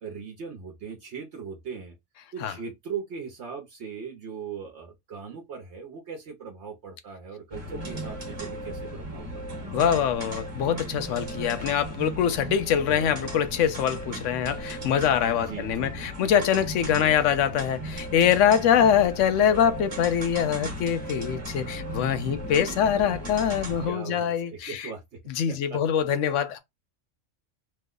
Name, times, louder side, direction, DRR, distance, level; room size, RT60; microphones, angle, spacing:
voice 1, 0.0-1.9 2.3-9.7 12.9-13.0 15.5-15.9 16.9-17.1 18.8-18.9 23.9-25.0 25.7-25.8, right 6 dB, 65° right, 1.0 m, -39 dB
sound 1, 7.5-23.9, equal, 30° right, 1.0 m, -36 dB
voice 2, 9.7-24.9 25.3-26.6, left 8 dB, 75° left, 0.9 m, -24 dB
3.0 x 2.1 x 3.6 m
omnidirectional pair, 1.3 m